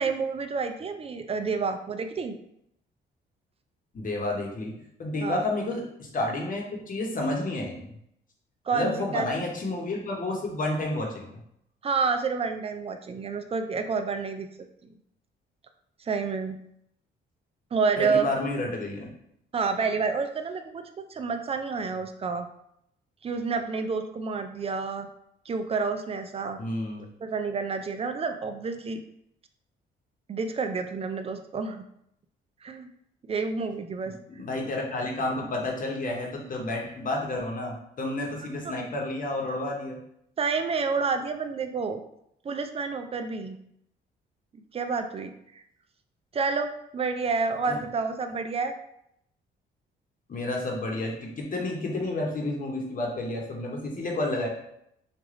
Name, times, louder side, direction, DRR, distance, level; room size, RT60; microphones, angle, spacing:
voice 1, 0.0-2.4 5.2-5.5 8.7-9.3 11.8-14.5 16.0-16.6 17.7-18.3 19.5-20.8 21.1-22.5 23.2-25.1 25.5-26.6 27.2-29.0 30.3-31.8 32.6-32.9 33.3-34.1 38.6-38.9 40.4-42.0 42.4-43.6 44.5-45.3 46.3-48.7, right 4 dB, 30° right, 7 dB, 0.4 m, -29 dB
voice 2, 3.9-4.7 5.0-7.9 8.7-11.3 18.0-19.1 26.6-27.0 34.0-40.0 47.7-47.8 50.3-54.5, left 2 dB, 45° left, 0 dB, 1.1 m, -30 dB
3.3 x 2.5 x 3.8 m, 0.75 s
cardioid pair, 90°, 20 cm